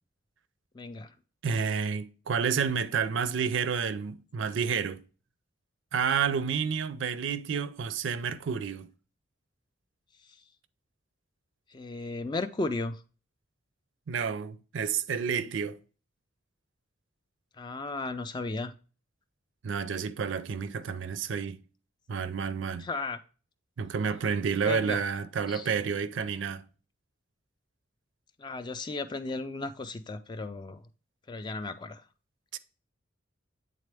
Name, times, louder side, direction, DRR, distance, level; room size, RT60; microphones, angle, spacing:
voice 1, 0.7-1.1 11.7-13.0 17.6-18.7 22.8-23.2 24.6-25.0 25.5-25.7 28.4-30.8 31.3-32.0, left 3 dB, 25° left, 0.3 m, -35 dB
voice 2, 1.4-5.0 5.9-8.9 14.1-15.8 19.6-21.6 22.1-22.9 23.8-26.6 32.5-32.6, right 6 dB, 70° right, 0.4 m, -30 dB
8.4 x 3.7 x 3.3 m
head